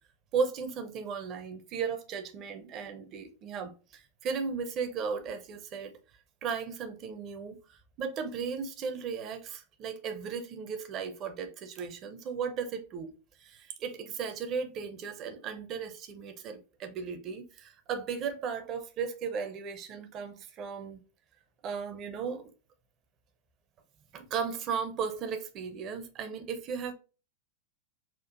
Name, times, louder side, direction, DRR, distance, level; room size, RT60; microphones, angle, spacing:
voice 1, 0.3-5.9 6.4-13.1 13.4-21.0 21.6-22.5 24.1-26.9, right 6 dB, 35° right, 0.6 m, -36 dB
4.3 x 2.4 x 2.4 m
figure-of-eight pair, 90°, 0 cm